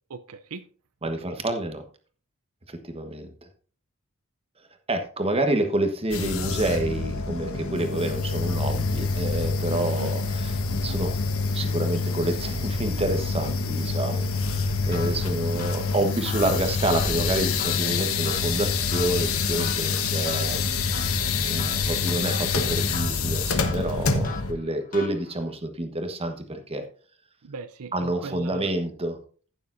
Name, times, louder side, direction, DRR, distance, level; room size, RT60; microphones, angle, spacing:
voice 1, 0.1-0.6 1.0-1.4 9.7-10.1 15.0-15.2 15.6-15.7 27.4-28.7, right 4 dB, 75° right, 11 dB, 0.5 m, -40 dB
voice 2, 1.0-1.8 2.7-3.3 4.9-11.2 11.5-20.6 21.5-26.8 27.9-29.2, right 1 dB, 25° right, 6 dB, 1.2 m, -28 dB
sound 1, 6.1-24.5, left 4 dB, 65° left, 1.2 m, -26 dB
sound 2, 14.9-25.5, left 5 dB, 40° left, 1.0 m, -42 dB
15.5 x 6.9 x 2.6 m, 0.42 s
head